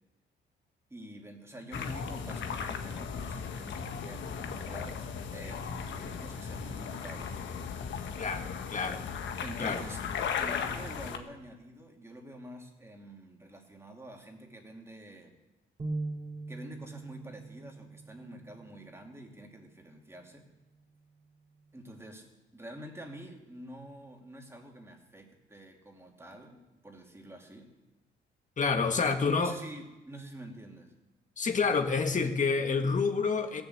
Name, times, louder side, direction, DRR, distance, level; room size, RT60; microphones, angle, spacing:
voice 1, 0.9-5.0 5.3-7.3 9.2-10.1 10.4-15.3 16.5-20.5 21.7-22.3 22.5-27.7 28.9-30.9, right 1 dB, 15° right, 1 dB, 2.7 m, -47 dB
sound 1, 1.7-11.2, left 6 dB, 65° left, 1.4 m, -37 dB
voice 2, 8.2-9.1 9.6-9.8 28.6-29.5 31.4-33.6, left 4 dB, 40° left, 6 dB, 1.6 m, -28 dB
sound 2, 15.8-19.3, right 2 dB, 30° right, 2.5 m, -41 dB
17.0 x 7.0 x 7.9 m, 1.1 s
cardioid pair, 90°, 20 cm